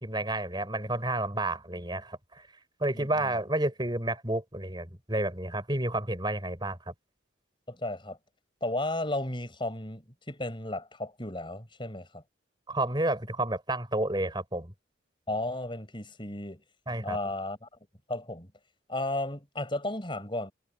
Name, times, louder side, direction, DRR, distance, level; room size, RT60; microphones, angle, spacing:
voice 1, 0.0-2.5 2.8-6.8 12.7-14.7 16.9-17.2, right 1 dB, 25° right, 5.2 m, -30 dB
voice 2, 2.9-3.3 7.7-8.2 8.6-12.2 15.3-16.6 17.0-17.7 18.1-18.5 18.9-20.5, left 1 dB, 25° left, 6.7 m, -34 dB
head